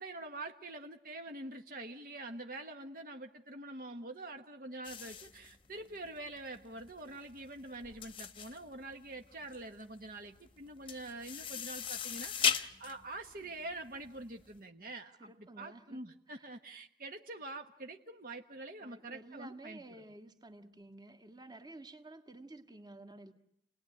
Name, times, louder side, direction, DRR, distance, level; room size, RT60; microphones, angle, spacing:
voice 1, 0.0-19.8, right 2 dB, 50° right, 5 dB, 1.3 m, -45 dB
sound 1, 4.8-14.5, left 7 dB, 30° left, 1.0 m, -38 dB
voice 2, 15.2-16.0 16.3-16.6 18.8-23.3, right 2 dB, 25° right, 4 dB, 1.7 m, -52 dB
30.0 x 19.5 x 9.9 m, 0.78 s
head